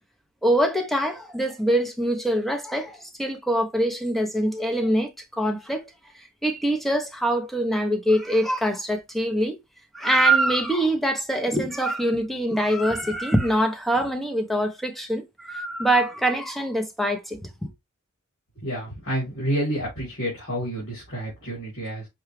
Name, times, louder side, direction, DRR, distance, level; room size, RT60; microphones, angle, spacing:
voice 1, 0.4-5.9 6.4-9.6 9.9-17.7, right 1 dB, ahead, 0.6 m, -24 dB
voice 2, 18.6-22.1, right 1 dB, 85° left, 2.8 m, -29 dB
5.8 x 2.3 x 3.1 m
head